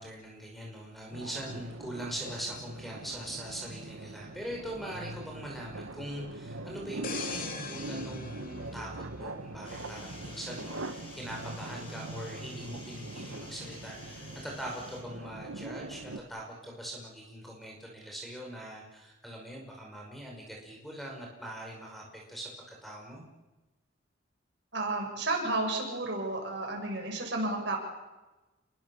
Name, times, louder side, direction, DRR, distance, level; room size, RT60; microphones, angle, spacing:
voice 1, 0.0-23.2, right 1 dB, ahead, -1 dB, 5.5 m, -42 dB
sound 1, 1.1-16.2, right 2 dB, 90° right, 1.6 m, -42 dB
sound 2, 7.0-9.7 10.2-10.4, left 5 dB, 45° left, 3.3 m, -41 dB
sound 3, 9.6-15.0, left 2 dB, 25° left, 6.4 m, -50 dB
voice 2, 24.7-27.9, right 2 dB, 60° right, 1 dB, 7.5 m, -32 dB
29.0 x 22.5 x 7.2 m, 1.1 s
head